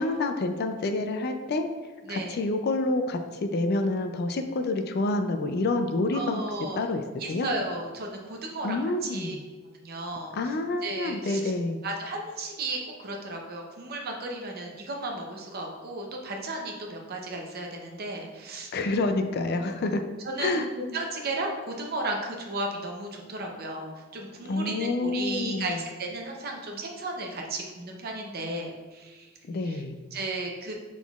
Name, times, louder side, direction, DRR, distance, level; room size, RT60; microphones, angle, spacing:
voice 1, 0.0-1.7 2.1-6.4 6.7-7.0 7.3-7.5 8.6-9.4 10.3-11.8 18.7-20.0 20.4-20.7 24.4-25.8 29.5-30.0, left 2 dB, 50° left, 6 dB, 0.4 m, -28 dB
voice 2, 2.1-2.4 6.1-6.8 7.2-9.3 9.8-10.5 10.8-11.5 11.8-18.7 19.6-19.7 20.2-29.3 29.6-29.8 30.1-30.7, right 2 dB, 50° right, 1 dB, 0.7 m, -34 dB
6.0 x 3.7 x 2.4 m, 1.3 s
head